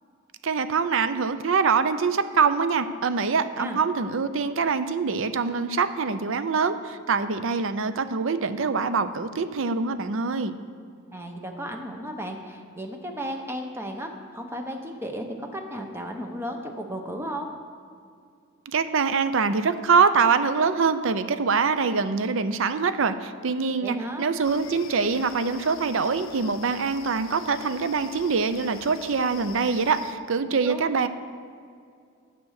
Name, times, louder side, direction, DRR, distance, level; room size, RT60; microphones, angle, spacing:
voice 1, 0.4-10.5 18.7-31.1, right 5 dB, 65° right, 12 dB, 0.5 m, -24 dB
voice 2, 11.1-17.5 23.8-24.3 30.5-30.9, equal, 10° right, 3 dB, 0.8 m, -34 dB
sound 1, 24.4-30.1, left 6 dB, 65° left, 0.6 m, -44 dB
9.5 x 7.0 x 6.4 m, 2.3 s
head